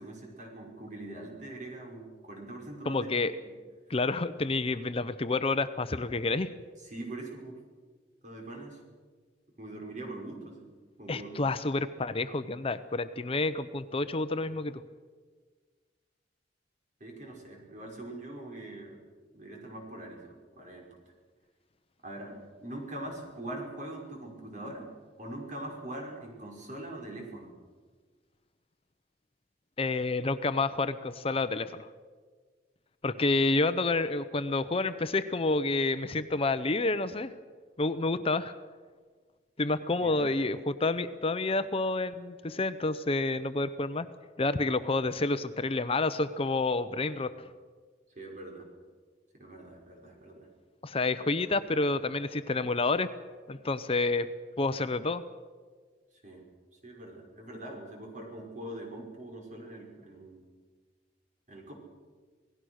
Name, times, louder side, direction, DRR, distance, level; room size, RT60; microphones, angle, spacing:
voice 1, 0.0-3.1 6.9-7.6 8.2-8.8 9.6-10.7 11.0-11.6 17.0-18.9 19.3-20.9 22.0-24.9 25.2-27.5 40.0-40.4 47.2-47.4 48.2-48.7 49.3-50.4 56.2-56.4 56.8-60.5 61.5-61.7, right 1 dB, 45° right, 0 dB, 5.8 m, -42 dB
voice 2, 2.8-3.3 3.9-6.5 11.1-14.8 29.8-31.9 33.0-37.3 37.8-38.5 39.6-44.1 44.4-47.3 50.8-53.1 53.5-54.3 54.6-55.2, left 3 dB, 30° left, 11 dB, 0.7 m, -29 dB
27.5 x 18.0 x 6.4 m, 1.5 s
head